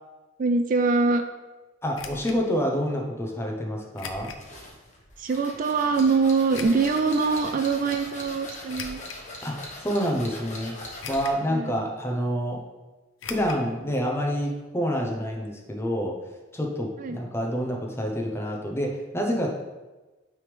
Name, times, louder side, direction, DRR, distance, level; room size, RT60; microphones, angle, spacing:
voice 1, 0.4-1.2 5.2-9.0 11.5-11.8 17.0-17.2, right 4 dB, 45° right, 6 dB, 0.3 m, -23 dB
voice 2, 1.8-4.3 9.4-10.7 11.1-12.6 13.2-16.2 16.5-19.6, equal, 15° left, 0 dB, 0.8 m, -28 dB
sound 1, 1.9-2.4 4.0-4.5 5.0-5.1 6.5-7.0 8.7-9.3 9.9-10.0 11.0-11.5 11.7-11.8 13.2-13.6 13.9-14.0 14.3-14.4, left 5 dB, 85° left, 0.6 m, -39 dB
sound 2, 4.4-11.4, left 1 dB, 40° left, 1.2 m, -41 dB
8.9 x 3.5 x 3.3 m, 1.1 s
head